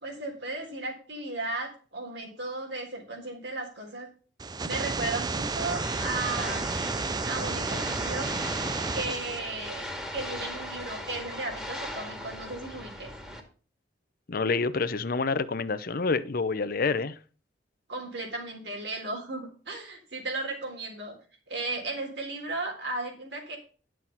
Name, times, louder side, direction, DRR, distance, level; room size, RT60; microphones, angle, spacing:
voice 1, 0.0-4.1 4.6-6.9 7.3-8.3 8.9-13.1 17.9-21.1 21.5-23.6, right 2 dB, 75° right, 1 dB, 3.7 m, -35 dB
sound 1, 4.4-9.4, right 3 dB, 25° right, 0.5 m, -31 dB
sound 2, 5.2-13.4, equal, 5° right, 2.1 m, -39 dB
voice 2, 14.3-17.2, left 4 dB, 55° left, 14 dB, 0.7 m, -27 dB
11.0 x 6.2 x 5.7 m, 0.39 s
head